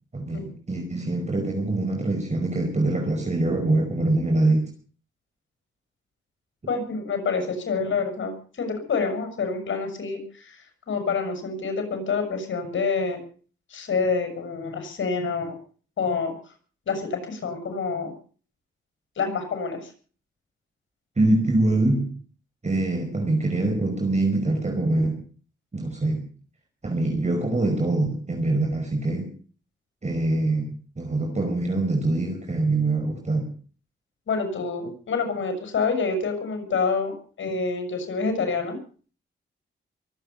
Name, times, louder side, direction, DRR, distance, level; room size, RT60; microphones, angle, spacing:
voice 1, 0.1-4.7 21.2-22.1 22.6-25.2 25.7-26.2 26.8-29.3 30.0-33.5, right 2 dB, 35° right, 2 dB, 5.2 m, -24 dB
voice 2, 6.7-13.2 13.7-15.6 16.0-16.3 16.9-18.1 19.2-19.9 34.3-38.8, left 4 dB, 75° left, 6 dB, 6.6 m, -27 dB
23.5 x 9.0 x 6.8 m, 0.42 s
cardioid pair, 60°, 20 cm